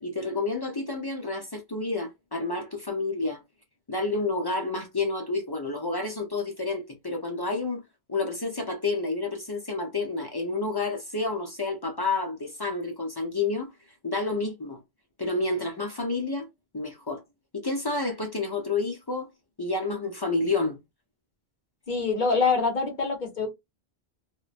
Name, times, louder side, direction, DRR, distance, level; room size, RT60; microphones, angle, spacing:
voice 1, 0.0-3.4 3.9-7.8 8.1-13.7 14.0-14.8 15.2-16.5 16.7-17.2 17.5-19.3 19.6-20.8, left 3 dB, 30° left, 0.4 m, -29 dB
voice 2, 21.9-23.5, left 4 dB, 50° left, 0.9 m, -25 dB
2.9 x 2.1 x 2.4 m
omnidirectional pair, 1.1 m